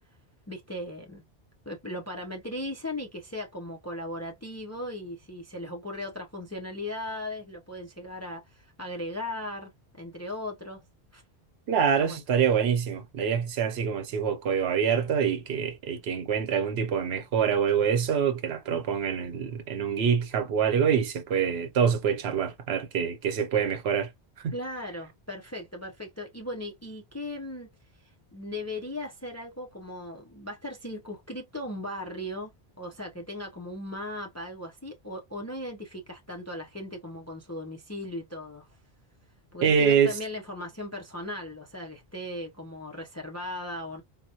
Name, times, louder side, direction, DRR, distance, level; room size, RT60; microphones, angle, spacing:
voice 1, 0.5-1.2 1.7-9.7 10.0-10.8 11.1-11.2 12.0-12.2 24.5-27.7 28.3-32.5 32.8-38.7 39.5-44.0, left 1 dB, 25° left, 0.4 m, -37 dB
voice 2, 11.7-24.1 24.4-24.5 39.6-40.2, right 7 dB, 80° right, 0.9 m, -25 dB
3.9 x 2.1 x 2.7 m
omnidirectional pair, 1.0 m